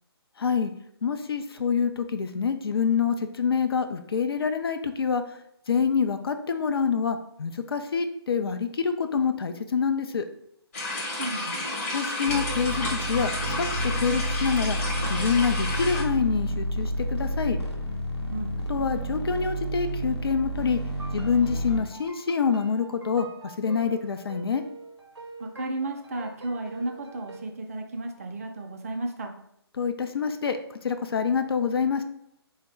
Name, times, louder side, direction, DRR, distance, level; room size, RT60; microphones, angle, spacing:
voice 1, 0.4-0.7 1.0-5.2 5.7-10.3 11.9-14.8 15.1-17.6 18.7-20.8 21.1-24.6 29.8-32.0, left 6 dB, 65° left, 7 dB, 0.4 m, -26 dB
sound 1, 10.7-16.0, left 2 dB, 30° left, 0.9 m, -31 dB
voice 2, 11.2-11.7 18.3-18.5 25.4-29.3, right 2 dB, 35° right, 4 dB, 0.4 m, -33 dB
sound 2, 12.3-21.8, right 1 dB, 80° left, 0.7 m, -30 dB
sound 3, 20.9-27.4, right 3 dB, 80° right, 0.6 m, -45 dB
3.5 x 2.0 x 3.1 m, 0.74 s
figure-of-eight pair, 140°, 14 cm